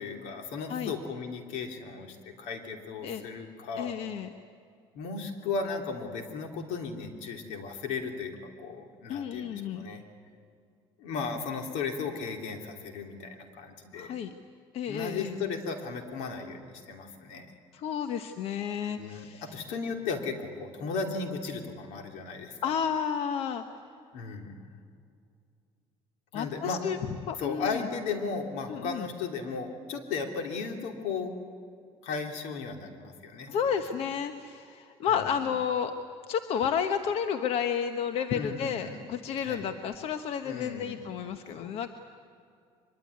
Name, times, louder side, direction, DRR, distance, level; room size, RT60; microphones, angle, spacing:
voice 1, 0.0-3.9 4.9-10.0 11.0-14.2 14.9-17.5 19.0-22.7 24.1-24.6 26.3-26.8 27.4-31.4 32.0-33.7 38.3-39.0 39.4-39.7 40.4-41.0 41.6-41.8, left 4 dB, 85° left, 4 dB, 3.2 m, -36 dB
voice 2, 3.7-4.3 9.1-9.8 13.9-14.3 14.7-15.4 17.7-19.4 22.6-23.6 26.3-27.9 28.7-29.1 33.5-35.9 36.3-41.9, left 7 dB, 60° left, 8 dB, 1.1 m, -31 dB
24.0 x 22.0 x 9.6 m, 2.4 s
cardioid pair, 130°, 12 cm